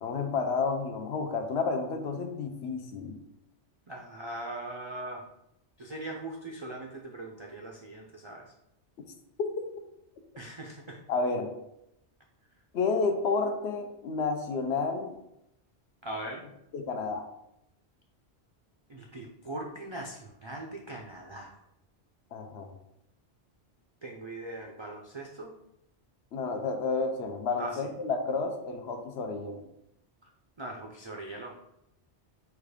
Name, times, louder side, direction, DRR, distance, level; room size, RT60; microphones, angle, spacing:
voice 1, 0.0-3.2 9.4-9.5 11.1-11.5 12.7-15.2 16.7-17.3 22.3-22.7 26.3-29.6, left 4 dB, 70° left, 5 dB, 0.9 m, -30 dB
voice 2, 3.9-5.2 5.8-8.4 10.4-11.0 16.0-16.4 18.9-21.5 24.0-25.5 27.6-27.8 30.6-31.6, right 2 dB, 45° right, 0 dB, 0.3 m, -40 dB
4.4 x 2.4 x 4.8 m, 0.81 s
omnidirectional pair, 1.2 m